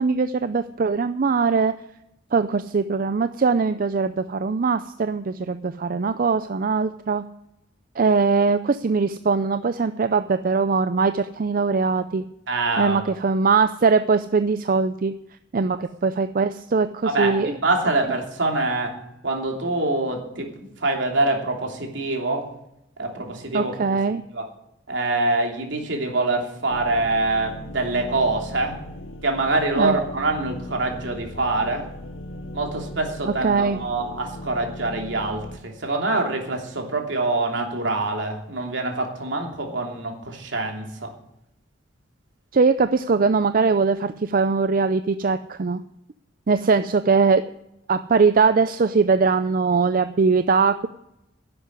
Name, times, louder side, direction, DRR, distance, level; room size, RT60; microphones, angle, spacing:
voice 1, 0.0-1.7 2.3-7.2 8.0-12.2 12.8-15.1 15.5-15.8 16.0-17.5 23.5-24.2 29.8-30.0 33.4-33.8 42.5-45.8 46.5-47.4 47.9-50.9, right 4 dB, 45° right, 11 dB, 0.5 m, -21 dB
voice 2, 12.5-13.0 17.0-19.0 19.2-20.5 20.8-22.5 23.0-24.0 24.3-24.5 24.9-28.8 29.2-31.9 32.5-41.1, right 2 dB, 70° right, 2 dB, 3.0 m, -25 dB
sound 1, 26.7-35.6, left 1 dB, 90° left, 0.9 m, -38 dB
11.0 x 7.8 x 9.8 m, 0.83 s
head